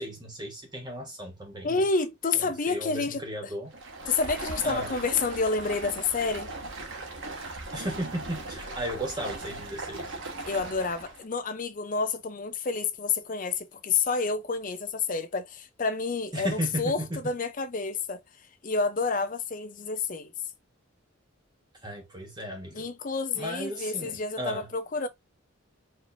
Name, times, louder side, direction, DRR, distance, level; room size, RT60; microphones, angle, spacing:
voice 1, 0.0-1.8 2.3-3.7 4.6-4.9 7.7-10.1 16.3-17.2 21.8-22.9 23.3-24.7, right 1 dB, 20° right, 1.4 m, -35 dB
voice 2, 1.6-3.5 4.1-6.5 10.4-18.2 18.6-20.3 22.7-25.1, left 4 dB, 40° left, 0.6 m, -29 dB
Stream, 3.7-11.2, right 2 dB, 70° right, 1.2 m, -38 dB
4.6 x 3.1 x 2.6 m
head